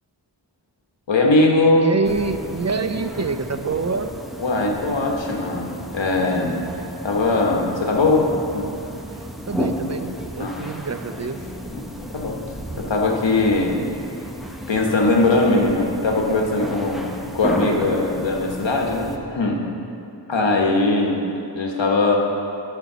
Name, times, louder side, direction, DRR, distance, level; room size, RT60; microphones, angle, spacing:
voice 1, 1.1-1.9 4.4-8.7 10.4-10.6 11.7-11.8 12.1-12.4 12.8-13.8 14.2-14.3 14.7-19.6 20.3-21.2 21.5-22.1, left 2 dB, 85° left, 0 dB, 1.2 m, -20 dB
voice 2, 1.8-4.1 9.5-11.4, right 4 dB, 40° right, 9 dB, 0.5 m, -26 dB
sound 1, 2.0-19.2, equal, ahead, 0.8 m, -33 dB
11.0 x 4.5 x 6.7 m, 2.7 s
wide cardioid pair, 55°, 43 cm